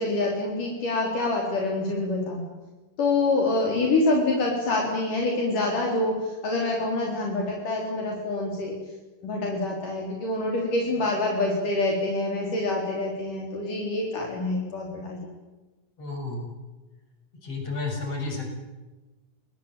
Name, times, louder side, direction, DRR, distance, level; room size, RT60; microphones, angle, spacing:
voice 1, 0.0-2.4 3.0-8.7 9.2-15.3, left 2 dB, 65° left, -1 dB, 5.8 m, -26 dB
voice 2, 16.0-16.5 17.4-18.6, left 3 dB, 40° left, 3 dB, 7.8 m, -32 dB
26.5 x 20.5 x 9.2 m, 1.1 s
omnidirectional pair, 4.0 m